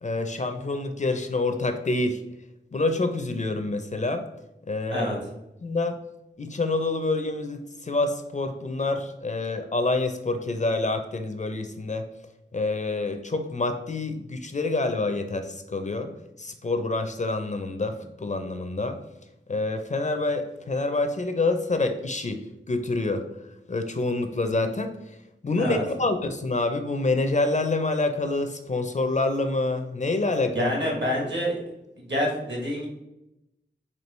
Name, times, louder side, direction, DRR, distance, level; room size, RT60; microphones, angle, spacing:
voice 1, 0.0-2.2 2.7-4.2 4.7-5.1 5.6-6.0 6.4-12.1 12.5-16.1 16.4-19.0 19.5-22.4 22.7-23.2 23.7-24.9 25.4-30.7, left 2 dB, 40° left, 7 dB, 0.4 m, -27 dB
voice 2, 30.5-31.6 32.0-32.9, equal, 65° right, -1 dB, 1.4 m, -27 dB
4.5 x 2.7 x 3.1 m, 0.88 s
wide cardioid pair, 70°, 20 cm